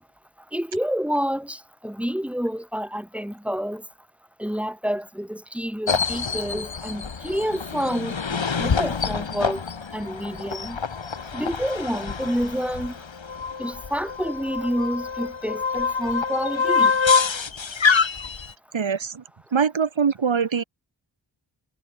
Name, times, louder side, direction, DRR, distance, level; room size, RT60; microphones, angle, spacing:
voice 1, 0.5-3.8 4.4-9.6 9.9-10.8 11.3-13.0 13.6-16.9, equal, 5° right, 5.8 m, -28 dB
sound 1, 5.9-18.5, left 5 dB, 75° left, 4.7 m, -26 dB
voice 2, 18.7-19.2 19.5-20.6, right 6 dB, 75° right, 2.8 m, -23 dB
cardioid pair, 50°, 46 cm